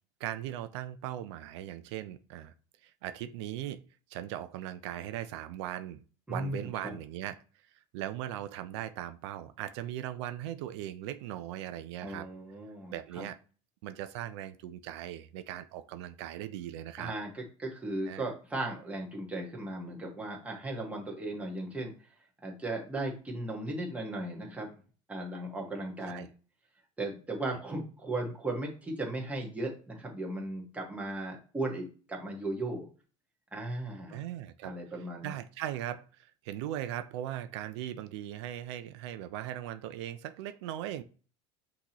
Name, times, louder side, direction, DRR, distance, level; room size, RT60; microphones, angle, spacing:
voice 1, 0.2-2.5 2.8-3.8 4.1-6.0 6.3-7.4 7.9-12.3 12.9-13.4 13.8-17.1 18.1-18.2 26.1-26.3 34.1-34.7 35.2-41.0, right 12 dB, 85° right, 11 dB, 0.4 m, -39 dB
voice 2, 6.3-6.9 12.0-13.2 17.0-21.9 22.4-24.8 25.1-26.3 27.0-32.9 33.5-34.2 34.6-35.4, right 2 dB, 10° right, -1 dB, 1.4 m, -36 dB
5.9 x 2.9 x 2.9 m, 0.38 s
supercardioid pair, 120°, 14 cm